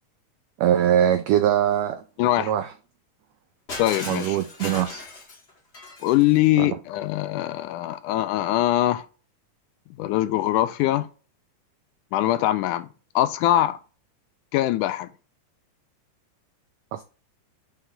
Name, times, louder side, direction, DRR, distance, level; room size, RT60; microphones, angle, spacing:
voice 1, 0.6-2.0 2.4-2.7 4.0-5.0 6.6-6.7 16.9-17.0, right 10 dB, 90° right, 1.4 m, -22 dB
voice 2, 2.2-2.5 3.8-4.4 6.0-9.1 10.0-11.1 12.1-12.9 13.2-13.8 14.5-15.1, left 14 dB, 85° left, 2.1 m, -22 dB
Shatter, 3.7-6.5, left 3 dB, 45° left, 0.8 m, -37 dB
6.0 x 3.4 x 5.4 m
omnidirectional pair, 3.6 m